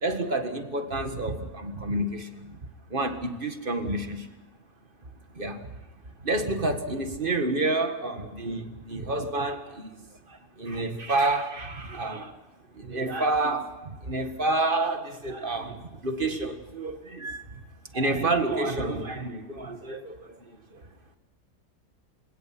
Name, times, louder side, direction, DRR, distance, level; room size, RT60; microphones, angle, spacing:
voice 1, 0.0-2.6 2.9-4.3 5.3-5.8 6.2-12.4 12.7-17.6 17.9-20.9, right 2 dB, 35° right, 7 dB, 1.9 m, -29 dB
28.0 x 18.0 x 6.0 m, 1.1 s
omnidirectional pair, 1.6 m